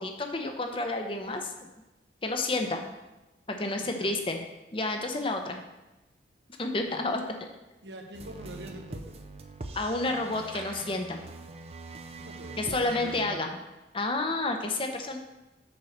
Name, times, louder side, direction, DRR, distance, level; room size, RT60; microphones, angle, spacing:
voice 1, 0.0-1.5 2.2-2.8 3.5-4.4 4.7-5.6 6.6-7.2 9.7-11.2 12.6-13.6 13.9-15.2, left 2 dB, 30° left, 4 dB, 0.8 m, -30 dB
voice 2, 3.8-4.1 6.8-7.2 7.8-9.2 12.2-13.4, equal, 75° right, 3 dB, 1.2 m, -44 dB
sound 1, 8.1-13.2, right 3 dB, 35° right, 0.6 m, -43 dB
7.1 x 4.6 x 6.5 m, 1.0 s
head